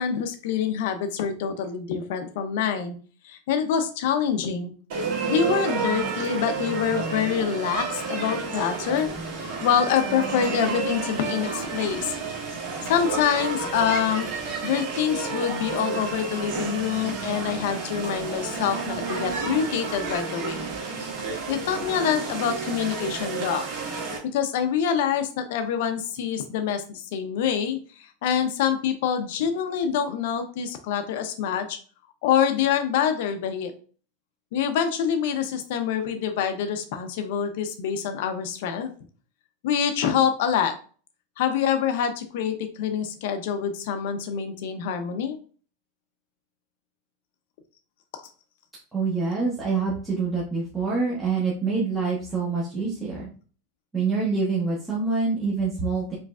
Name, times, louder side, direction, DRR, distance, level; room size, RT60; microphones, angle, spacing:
voice 1, 0.0-2.9 3.2-4.7 5.3-9.1 9.6-12.1 12.8-14.3 14.6-20.7 21.5-23.7 24.3-31.8 32.2-33.7 34.5-38.9 39.6-40.7 41.4-45.4, left 8 dB, 55° left, 7 dB, 0.6 m, -26 dB
sound 1, 4.9-24.2, right 4 dB, 55° right, 1.8 m, -31 dB
voice 2, 48.9-53.3 53.9-56.2, right 4 dB, 5° right, -7 dB, 0.8 m, -26 dB
4.8 x 3.1 x 2.3 m, 0.40 s
supercardioid pair, 175°, 0 cm